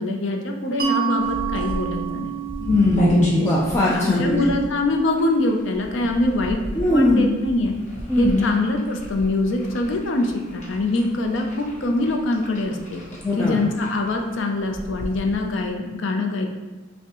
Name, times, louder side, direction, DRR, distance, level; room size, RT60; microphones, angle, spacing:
voice 1, 0.0-2.3 3.9-6.6 6.9-7.8 8.2-13.0 13.4-16.5, left 2 dB, 75° left, 3 dB, 0.5 m, -23 dB
Mallet percussion, 0.8-6.2, right 8 dB, 45° right, 0.4 m, -30 dB
sound 1, 1.2-15.7, left 1 dB, 35° left, 0.9 m, -31 dB
voice 2, 2.6-4.5 6.7-7.3 8.1-8.5 13.2-13.6, left 2 dB, 15° left, -7 dB, 0.4 m, -20 dB
6.0 x 2.1 x 2.9 m, 1.2 s
head